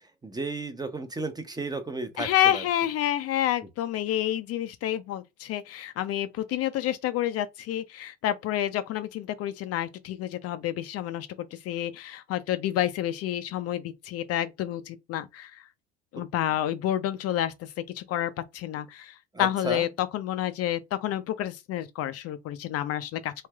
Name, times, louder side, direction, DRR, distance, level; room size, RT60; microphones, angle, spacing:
voice 1, 0.2-2.6 19.3-19.9, right 2 dB, 10° right, 0.6 m, -33 dB
voice 2, 2.2-15.6 16.1-17.7 17.9-23.3, left 12 dB, 50° left, 0.4 m, -29 dB
3.2 x 2.8 x 2.2 m
hypercardioid pair, 80°, 33 cm